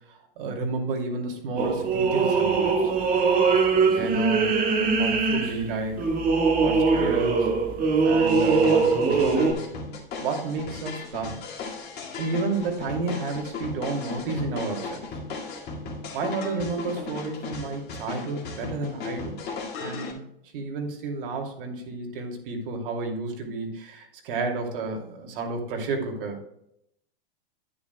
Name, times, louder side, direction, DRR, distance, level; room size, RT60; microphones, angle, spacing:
voice 1, 0.1-2.9 3.7-4.5 4.8-6.0 6.6-7.5 8.0-9.6 10.2-11.4 12.2-15.1 16.1-19.3 19.8-20.2 20.5-26.4, right 3 dB, 65° right, 2 dB, 2.6 m, -31 dB
sound 1, 1.6-9.5, right 4 dB, 30° right, 1.7 m, -22 dB
sound 2, 8.3-20.1, left 4 dB, 35° left, 2.2 m, -36 dB
10.0 x 9.6 x 2.3 m, 0.76 s
hypercardioid pair, 125°, 29 cm